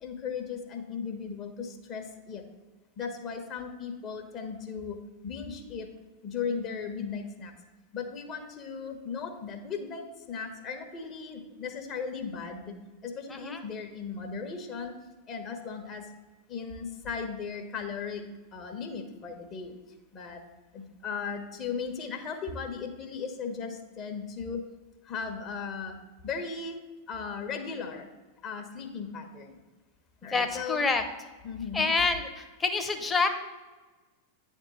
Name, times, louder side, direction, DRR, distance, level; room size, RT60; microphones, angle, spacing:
voice 1, 0.0-2.4 3.0-5.9 6.2-7.5 7.9-12.8 13.0-14.9 15.3-16.1 16.5-18.2 18.5-19.7 20.1-20.4 20.7-24.6 25.1-26.0 26.2-26.8 27.1-28.1 28.4-29.6 30.2-30.8 31.4-31.9, left 5 dB, 35° left, 4 dB, 1.1 m, -37 dB
voice 2, 13.3-13.6 30.3-31.0 31.7-33.3, left 4 dB, 15° left, 6 dB, 0.9 m, -27 dB
9.3 x 3.6 x 6.9 m, 1.2 s
figure-of-eight pair, 90°, 0 cm